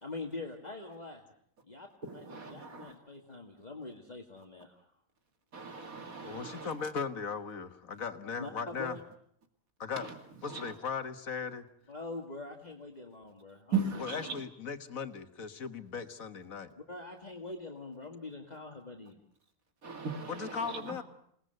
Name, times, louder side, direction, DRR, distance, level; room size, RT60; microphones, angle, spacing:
voice 1, 0.0-1.2 1.7-1.9 2.1-4.8 8.4-8.5 8.8-9.0 11.9-14.3 16.8-19.2, left 3 dB, 30° left, 2 dB, 2.1 m, -44 dB
voice 2, 2.3-2.9 5.5-6.7 10.0-10.1 10.5-10.7 13.7-14.4 19.8-21.0, right 5 dB, 85° right, 6 dB, 2.8 m, -37 dB
voice 3, 6.2-9.0 9.8-10.1 10.4-11.7 14.0-16.7 20.3-21.0, left 6 dB, 75° left, 10 dB, 1.9 m, -38 dB
28.0 x 19.0 x 7.9 m, 0.69 s
omnidirectional pair, 1.4 m